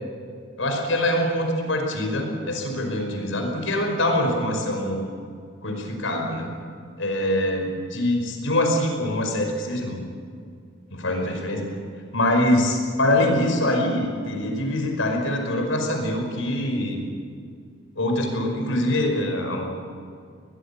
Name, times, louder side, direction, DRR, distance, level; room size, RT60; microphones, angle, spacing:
voice 1, 0.6-5.0 5.6-6.5 7.0-10.0 10.9-11.7 12.1-17.0 18.0-19.7, left 1 dB, 80° left, 3 dB, 5.3 m, -24 dB
22.5 x 20.5 x 8.6 m, 2.2 s
head